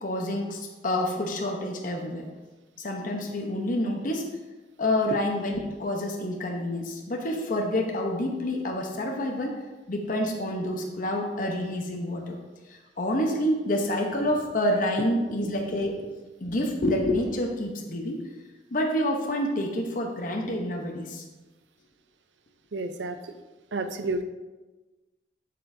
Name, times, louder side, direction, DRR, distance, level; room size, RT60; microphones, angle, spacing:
voice 1, 0.0-2.2 2.8-4.2 4.8-9.6 9.9-12.4 12.7-16.1 16.4-18.2 18.7-21.2, left 1 dB, 50° left, 1 dB, 0.9 m, -28 dB
voice 2, 22.7-23.2 23.7-24.2, right 3 dB, 85° right, 9 dB, 0.6 m, -30 dB
7.7 x 6.8 x 2.7 m, 1.2 s
head